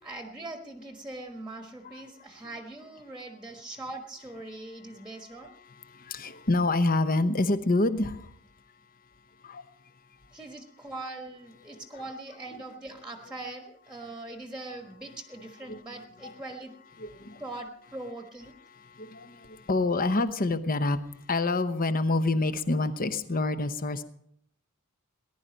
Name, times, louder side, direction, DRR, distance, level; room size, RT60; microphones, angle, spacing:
voice 1, 0.0-5.6 10.3-16.8 17.4-18.6, right 2 dB, 5° right, 1.3 m, -41 dB
voice 2, 5.9-8.3 9.4-9.6 15.7-15.8 17.0-17.4 18.9-21.0 21.3-24.0, left 2 dB, 40° left, 0.9 m, -27 dB
19.0 x 11.5 x 5.2 m
head